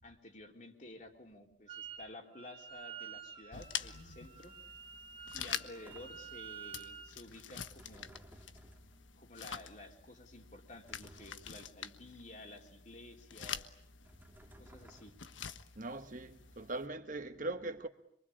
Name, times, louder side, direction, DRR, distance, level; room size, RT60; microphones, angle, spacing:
voice 1, 0.0-4.6 5.3-8.2 9.2-13.8 14.6-15.1, left 2 dB, 40° left, 3.6 m, -52 dB
Wind instrument woodwind instrument, 1.7-2.1 2.3-7.2, right 8 dB, 25° right, 1.8 m, -49 dB
sound 1, 3.5-16.9, left 8 dB, 75° left, 1.3 m, -47 dB
sound 2, 5.7-6.4 7.6-9.1 10.7-11.7 14.0-15.4, right 1 dB, 10° right, 2.2 m, -59 dB
voice 2, 15.7-17.9, right 2 dB, 45° right, 1.4 m, -40 dB
27.0 x 24.0 x 8.7 m
head